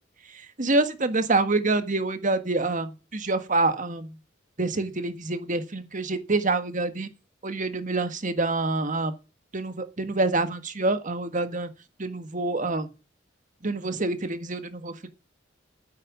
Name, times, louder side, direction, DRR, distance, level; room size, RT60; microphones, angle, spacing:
voice 1, 0.3-4.2 4.6-7.1 7.4-9.1 9.5-11.7 12.0-12.9 13.6-15.1, right 2 dB, 45° right, 1.6 m, -26 dB
9.8 x 9.2 x 8.5 m
head